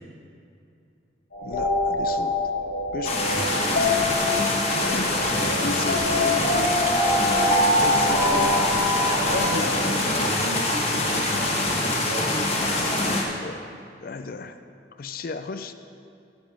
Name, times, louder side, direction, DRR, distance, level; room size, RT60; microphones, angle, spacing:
sound 1, 1.3-9.5, left 1 dB, 70° left, 1.8 m, -25 dB
voice 1, 1.4-2.4 2.9-3.6 4.9-5.2 5.6-6.8 7.4-7.5 7.8-8.9 9.3-9.8 13.4-13.6 14.0-14.6 15.0-15.7, left 4 dB, 50° left, 9 dB, 0.4 m, -34 dB
sound 2, 3.0-13.2, left 2 dB, 35° left, 1.2 m, -24 dB
voice 2, 5.4-6.0 9.2-12.4, right 2 dB, 50° right, 2 dB, 1.0 m, -35 dB
sound 3, 6.4-11.1, right 4 dB, 15° right, 0.4 m, -38 dB
14.0 x 7.1 x 3.5 m, 2.5 s
head